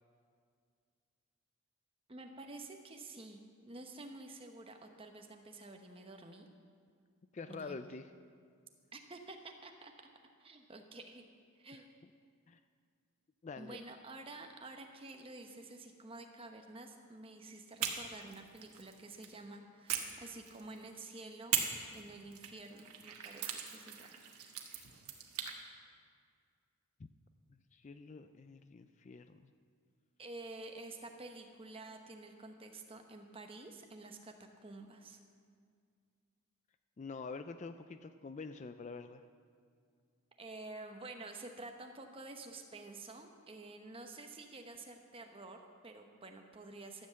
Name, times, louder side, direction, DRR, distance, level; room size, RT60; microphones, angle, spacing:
voice 1, 2.1-6.5 7.5-7.8 8.9-10.1 10.4-11.2 11.5-11.9 13.6-21.6 21.9-24.2 30.2-34.3 34.6-35.2 40.4-47.1, right 2 dB, 25° right, 4 dB, 0.9 m, -50 dB
voice 2, 7.3-8.1 11.7-11.8 12.5-12.6 13.4-13.8 27.5-29.5 37.0-39.2, left 4 dB, 30° left, 10 dB, 0.3 m, -46 dB
sound 1, 17.8-19.3 19.9-20.9 21.5-25.6, right 8 dB, 85° right, 1.3 m, -40 dB
13.0 x 7.8 x 7.4 m, 2.2 s
head